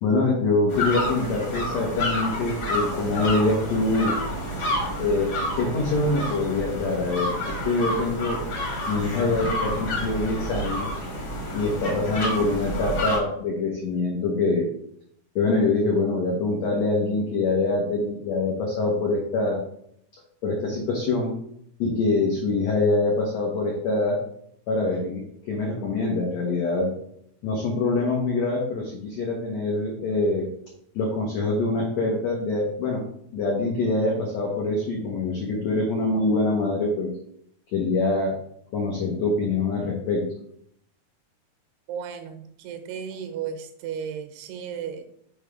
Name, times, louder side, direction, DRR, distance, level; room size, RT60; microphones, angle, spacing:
voice 1, 0.0-4.1 5.0-5.3 5.5-8.4 8.9-11.0 11.5-14.7 15.3-19.6 20.4-21.3 21.8-24.2 24.7-26.9 27.4-30.5 30.9-33.0 33.3-37.1 37.7-38.3 38.7-40.2, left 3 dB, 90° left, -1 dB, 1.5 m, -24 dB
sound 1, 0.7-13.2, equal, 55° left, 1.1 m, -29 dB
voice 2, 41.9-45.1, right 7 dB, 85° right, 7 dB, 2.8 m, -34 dB
6.9 x 3.3 x 5.0 m, 0.70 s
omnidirectional pair, 4.6 m